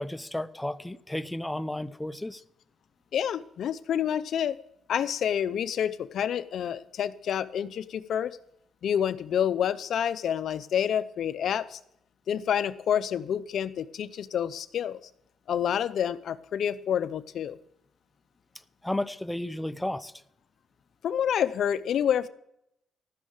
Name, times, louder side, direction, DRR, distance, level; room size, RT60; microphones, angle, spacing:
voice 1, 0.0-2.4 18.8-20.1, left 1 dB, 10° left, 0.6 m, -33 dB
voice 2, 3.1-4.6 4.9-8.4 8.8-11.8 12.3-15.0 15.5-17.6 21.0-22.3, left 9 dB, 65° left, 0.6 m, -28 dB
15.0 x 6.4 x 8.8 m
cardioid pair, 90°, 0 cm